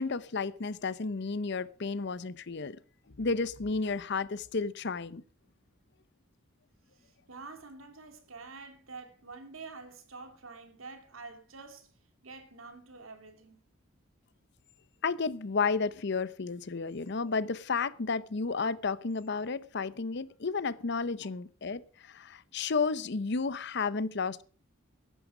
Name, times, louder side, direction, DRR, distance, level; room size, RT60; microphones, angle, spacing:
voice 1, 0.0-2.8 3.2-5.2 15.0-24.4, left 4 dB, 55° left, 0.7 m, -32 dB
voice 2, 7.0-11.9 12.2-13.6, right 4 dB, 85° right, 2.6 m, -47 dB
14.5 x 11.0 x 4.9 m
head